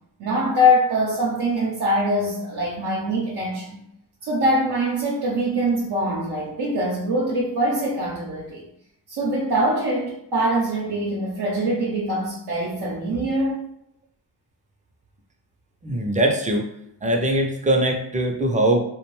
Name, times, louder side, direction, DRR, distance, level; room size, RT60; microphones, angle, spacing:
voice 1, 0.2-3.8 4.2-8.7 9.1-13.6, equal, 70° right, -4 dB, 0.6 m, -23 dB
voice 2, 15.8-16.7 17.0-18.8, right 1 dB, 20° right, 3 dB, 0.5 m, -21 dB
2.4 x 2.2 x 3.1 m, 0.77 s
cardioid pair, 50°, 41 cm